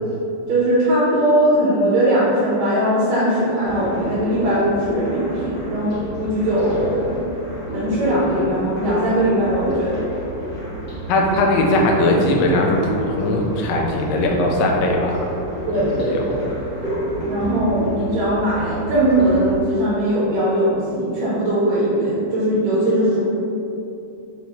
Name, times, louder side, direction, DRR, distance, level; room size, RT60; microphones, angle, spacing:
voice 1, 0.5-7.2 7.7-10.0 15.7-16.6 17.3-23.2, right 1 dB, 65° right, -7 dB, 1.2 m, -20 dB
sound 1, 3.6-19.6, right 1 dB, 35° left, 1.4 m, -30 dB
voice 2, 11.1-15.1 15.7-16.4, left 1 dB, 70° left, 0 dB, 1.1 m, -19 dB
4.1 x 3.5 x 2.9 m, 2.8 s
omnidirectional pair, 2.3 m